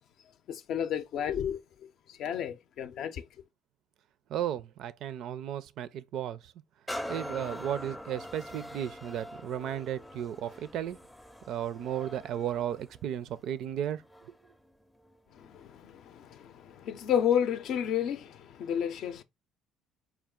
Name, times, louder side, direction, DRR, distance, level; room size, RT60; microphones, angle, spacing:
voice 1, 0.5-3.3 15.3-19.2, left 9 dB, 65° left, 0.5 m, -32 dB
voice 2, 4.3-6.4 7.1-11.0 11.5-14.0, right 10 dB, 65° right, 0.4 m, -34 dB
sound 1, 6.9-14.5 15.0-15.2, equal, 5° left, 0.5 m, -43 dB
4.4 x 2.3 x 3.6 m
cardioid pair, 95°, 0 cm